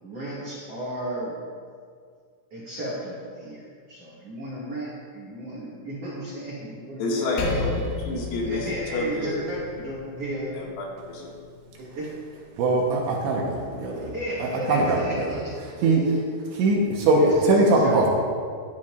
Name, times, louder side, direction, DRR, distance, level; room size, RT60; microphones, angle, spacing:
voice 1, 0.0-1.4 2.5-7.8 8.4-10.5 11.2-11.3 11.8-12.1 14.0-16.2 17.2-18.1, right 1 dB, 50° right, -7 dB, 2.0 m, -34 dB
voice 2, 7.0-7.7 8.0-9.4 10.5-11.2, left 3 dB, 90° left, -3 dB, 4.5 m, -29 dB
Percussion, 7.4-12.2, left 3 dB, 70° left, 3.4 m, -34 dB
voice 3, 12.6-14.1 14.4-15.4 15.8-16.0 16.6-18.1, right 2 dB, 70° right, -1 dB, 3.0 m, -21 dB
16.5 x 11.5 x 2.5 m, 2.1 s
omnidirectional pair, 5.9 m